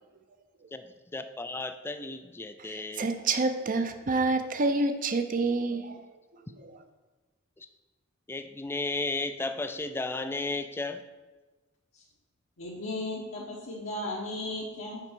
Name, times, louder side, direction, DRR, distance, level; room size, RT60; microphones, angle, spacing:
voice 1, 0.7-3.1 7.6-7.7 8.3-11.0, left 3 dB, 10° left, 9 dB, 0.3 m, -34 dB
voice 2, 2.6-6.0 6.6-6.7, right 3 dB, 40° right, 7 dB, 0.6 m, -28 dB
voice 3, 12.6-15.0, left 1 dB, 70° left, -4 dB, 1.0 m, -35 dB
5.9 x 4.3 x 6.0 m, 1.2 s
head